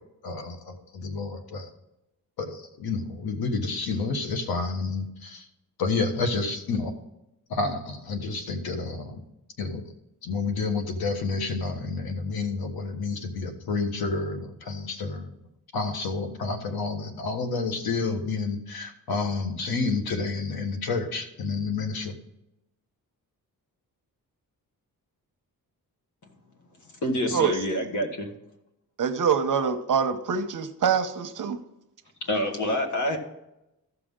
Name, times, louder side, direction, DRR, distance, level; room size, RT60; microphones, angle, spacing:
voice 1, 0.2-1.7 2.4-5.5 5.8-6.9 7.5-9.2 9.6-9.8 10.2-15.3 15.7-22.1, left 4 dB, 85° left, 5 dB, 1.4 m, -29 dB
voice 2, 27.0-28.3 32.2-33.2, left 1 dB, 55° left, 4 dB, 1.8 m, -27 dB
voice 3, 29.0-31.6, right 7 dB, 60° right, 8 dB, 0.9 m, -25 dB
14.5 x 5.9 x 3.8 m, 0.88 s
cardioid pair, 105°, 36 cm